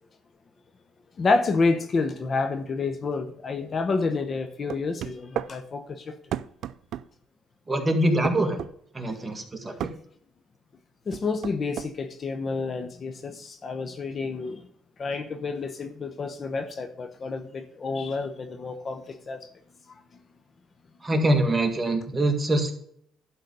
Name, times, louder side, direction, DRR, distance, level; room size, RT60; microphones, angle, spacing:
voice 1, 1.2-6.2 11.1-14.7 15.0-19.5 19.9-20.0, left 4 dB, 40° left, 1.0 m, -29 dB
sound 1, 4.7-5.5 6.3-7.1 8.2-8.7 9.8-10.0 11.1-11.9, right 11 dB, 70° right, 0.4 m, -32 dB
voice 2, 7.7-8.6 8.9-9.7 21.0-22.8, right 1 dB, 20° right, 2.0 m, -24 dB
12.0 x 4.1 x 6.8 m
cardioid pair, 105°, 0 cm